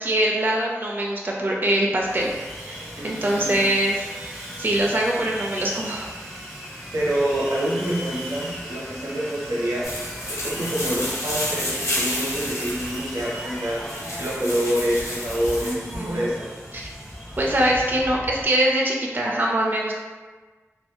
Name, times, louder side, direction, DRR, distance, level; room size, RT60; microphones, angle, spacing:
voice 1, 0.0-6.1 15.6-16.3 16.7-16.9 17.4-19.9, right 1 dB, 40° right, -2 dB, 0.3 m, -23 dB
Sawing, 2.0-18.5, equal, ahead, 0.8 m, -37 dB
voice 2, 3.0-3.6 6.9-9.9 10.3-13.8 14.2-16.5, right 1 dB, 90° right, -6 dB, 0.7 m, -26 dB
sound 1, 9.8-15.7, left 1 dB, 70° left, 0.7 m, -30 dB
2.6 x 2.5 x 2.2 m, 1.4 s
wide cardioid pair, 45°, 5 cm